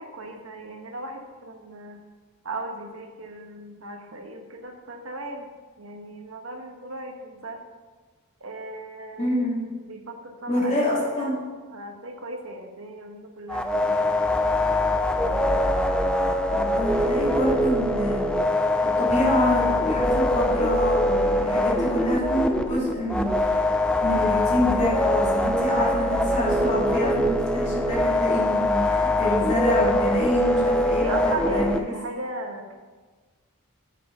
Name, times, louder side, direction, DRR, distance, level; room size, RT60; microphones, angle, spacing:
voice 1, 0.0-2.0 2.4-5.5 5.8-7.6 8.4-9.4 9.9-11.3 11.7-14.1 15.2-15.5 31.0-32.8, right 2 dB, 70° right, 3 dB, 1.1 m, -36 dB
voice 2, 9.2-9.6 10.5-11.4 16.5-18.3 18.8-23.6 24.0-31.8, left 1 dB, 35° left, -6 dB, 2.8 m, -26 dB
sound 1, 13.5-31.8, left 1 dB, 5° left, 0.4 m, -23 dB
8.5 x 5.7 x 5.5 m, 1.4 s
head